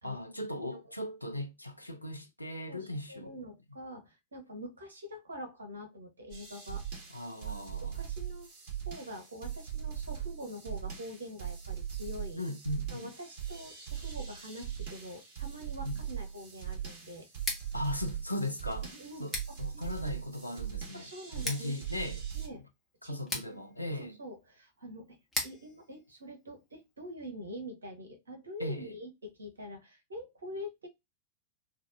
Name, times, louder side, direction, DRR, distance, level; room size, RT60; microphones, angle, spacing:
voice 1, 0.0-3.4 7.1-8.0 12.4-13.1 15.8-15.9 17.7-18.9 19.2-19.3 19.6-22.2 23.0-24.2 28.6-28.9, left 1 dB, 85° left, 0.5 m, -38 dB
voice 2, 2.7-6.9 7.8-8.5 8.8-12.4 12.9-17.3 18.9-20.1 20.9-21.7 22.3-22.6 23.0-23.6 23.9-30.9, equal, 75° right, 1.1 m, -45 dB
sound 1, 6.3-22.5, right 9 dB, 45° right, 1.7 m, -40 dB
Scissors, 17.3-27.1, left 2 dB, 10° left, 1.2 m, -43 dB
3.3 x 2.5 x 2.5 m
figure-of-eight pair, 90°, 0 cm